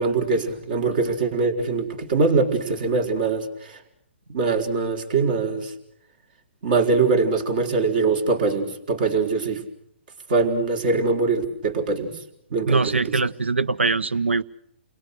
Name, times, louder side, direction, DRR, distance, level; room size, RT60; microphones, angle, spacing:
voice 1, 0.0-3.8 4.3-5.7 6.6-9.6 10.3-12.1 12.5-13.2, right 4 dB, 50° right, 6 dB, 4.3 m, -22 dB
voice 2, 12.7-14.4, right 3 dB, 80° right, 18 dB, 0.9 m, -22 dB
29.5 x 22.5 x 6.6 m, 0.76 s
figure-of-eight pair, 130°, 6 cm